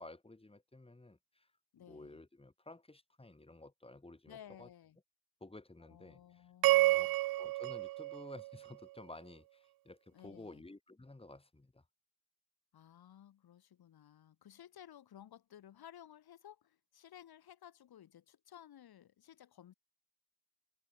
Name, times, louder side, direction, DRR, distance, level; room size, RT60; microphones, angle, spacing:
voice 1, 0.0-1.5 1.9-4.7 5.4-6.5 6.9-7.1 7.4-11.8, left 2 dB, 10° left, 3.9 m, -53 dB
voice 2, 1.7-2.2 4.3-5.0 5.8-7.1 10.1-10.6 12.7-19.7, left 10 dB, 55° left, 4.5 m, -57 dB
sound 1, 6.6-9.0, right 18 dB, 50° right, 0.6 m, -31 dB
hypercardioid pair, 60°, 45 cm